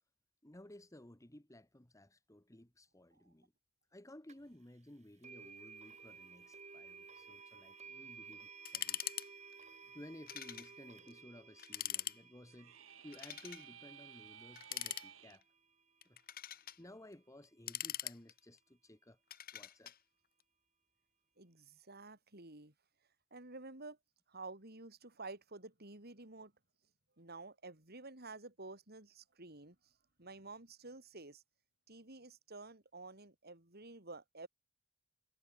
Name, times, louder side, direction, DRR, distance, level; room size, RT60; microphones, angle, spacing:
voice 1, 0.4-3.5 3.9-9.0 9.9-12.8 13.0-15.4 16.8-19.2 19.5-19.9, left 1 dB, 15° left, 1.4 m, -56 dB
sound 1, 4.3-4.4 5.2-16.2, right 5 dB, 35° right, 4.6 m, -56 dB
sound 2, 8.7-9.3 9.5-9.6 10.3-10.7 11.1-11.2 11.6-12.2 13.1-13.7 14.6-15.4 16.0-16.8 17.4-18.6 19.3-20.0, left 12 dB, 45° left, 2.0 m, -42 dB
sound 3, 12.5-15.4, right 9 dB, 70° right, 1.9 m, -56 dB
voice 2, 21.4-22.7 23.3-24.0 24.3-26.5 27.2-29.8 30.2-31.4 31.9-34.5, right 3 dB, 50° right, 4.1 m, -51 dB
head